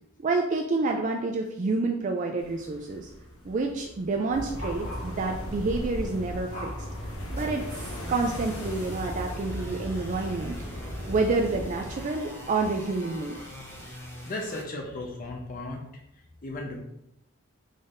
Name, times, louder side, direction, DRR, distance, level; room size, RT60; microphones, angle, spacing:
voice 1, 0.2-3.1 3.4-6.7 7.3-10.6 10.8-13.4, right 3 dB, 35° right, 2 dB, 0.3 m, -28 dB
sound 1, 2.4-14.0, left 1 dB, 85° left, 1.1 m, -47 dB
sound 2, 4.3-12.0, equal, 70° left, 1.5 m, -36 dB
sound 3, 7.2-14.6, equal, 10° left, 0.8 m, -45 dB
voice 2, 14.3-15.9 16.4-16.8, left 2 dB, 40° left, 0 dB, 0.7 m, -35 dB
5.2 x 3.9 x 2.6 m, 0.81 s
head